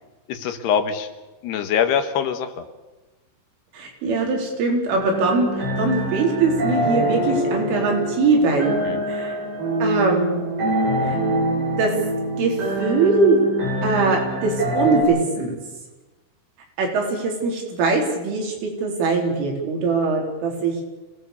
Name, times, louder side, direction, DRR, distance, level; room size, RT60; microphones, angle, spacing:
voice 1, 0.3-1.1 1.4-2.6 8.8-9.0, left 8 dB, 70° left, 8 dB, 3.2 m, -23 dB
voice 2, 3.7-8.7 9.1-9.4 9.8-10.5 11.0-11.2 11.8-11.9 12.4-13.4 13.8-15.6 16.8-20.8, right 3 dB, 85° right, 1 dB, 7.1 m, -21 dB
sound 1, 4.9-15.0, right 1 dB, 50° right, 7.3 m, -25 dB
27.0 x 18.5 x 7.0 m, 1.1 s
omnidirectional pair, 5.5 m